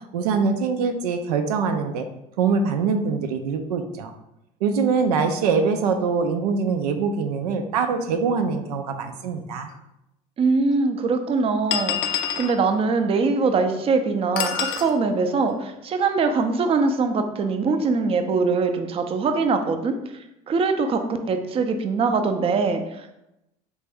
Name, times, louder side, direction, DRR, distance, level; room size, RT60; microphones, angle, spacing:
voice 1, 0.1-2.1 2.4-4.1 4.6-9.7, right 5 dB, 90° right, 6 dB, 0.4 m, -23 dB
sound 1, 9.7-9.8 10.7-10.8 11.7-12.6 14.4-14.9, left 8 dB, 65° left, 0.5 m, -26 dB
voice 2, 10.4-23.2, right 4 dB, 30° right, 7 dB, 0.4 m, -23 dB
3.3 x 2.6 x 3.4 m, 0.87 s
hypercardioid pair, 85°, 19 cm